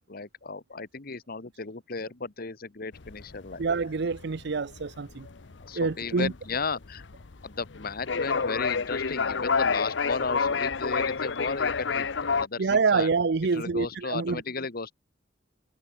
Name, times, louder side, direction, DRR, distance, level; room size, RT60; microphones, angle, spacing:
voice 1, 0.1-3.6 5.6-7.0 7.4-13.1 13.5-14.9, left 4 dB, 55° left, 1.4 m, -34 dB
sound 1, 2.9-12.5, left 5 dB, 70° left, 0.9 m, -29 dB
voice 2, 3.6-5.3 5.7-6.3 12.6-14.4, right 4 dB, 65° right, 0.6 m, -26 dB
head